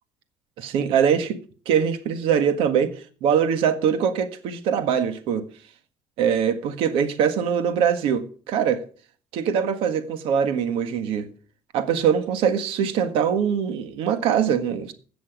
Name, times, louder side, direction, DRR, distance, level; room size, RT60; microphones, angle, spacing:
voice 1, 0.6-1.4 1.6-5.4 6.2-8.8 9.3-11.3 11.7-14.9, right 8 dB, 80° right, 1.7 m, -22 dB
16.5 x 6.2 x 6.1 m
cardioid pair, 110°, 9 cm